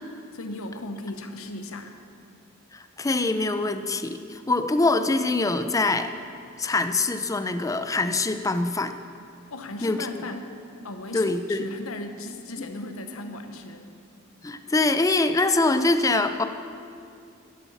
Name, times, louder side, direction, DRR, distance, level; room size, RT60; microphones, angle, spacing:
voice 1, 0.3-2.0 9.5-10.6 10.8-13.9, left 2 dB, 70° left, 7 dB, 0.9 m, -36 dB
voice 2, 2.7-6.1 6.6-8.9 9.8-10.1 11.1-11.7 14.4-16.4, left 2 dB, 15° left, 9 dB, 0.4 m, -24 dB
11.0 x 8.1 x 7.2 m, 2.4 s
head